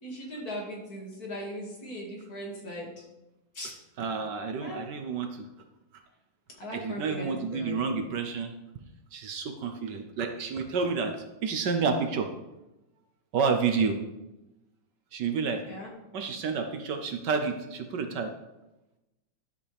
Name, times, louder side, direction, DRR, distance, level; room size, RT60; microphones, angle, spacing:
voice 1, 0.0-3.0 3.5-3.7 4.6-4.8 6.6-8.1 15.6-15.9, equal, 50° left, -2 dB, 2.7 m, -39 dB
voice 2, 4.0-5.5 6.7-8.5 9.1-12.3 13.3-14.0 15.1-15.6 16.1-18.3, right 5 dB, 65° right, 6 dB, 1.4 m, -30 dB
12.5 x 7.3 x 3.4 m, 0.96 s
omnidirectional pair, 2.1 m